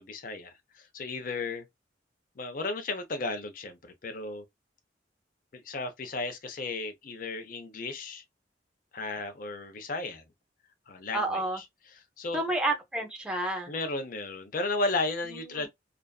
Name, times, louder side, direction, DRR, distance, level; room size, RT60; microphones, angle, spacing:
voice 1, 0.0-1.7 2.4-4.4 5.5-8.2 8.9-10.2 10.9-11.6 11.9-12.4 13.7-15.7, left 3 dB, 45° left, 0.5 m, -34 dB
voice 2, 11.1-11.6 12.3-13.7 15.2-15.7, right 2 dB, 5° right, 0.5 m, -30 dB
2.4 x 2.3 x 2.2 m
head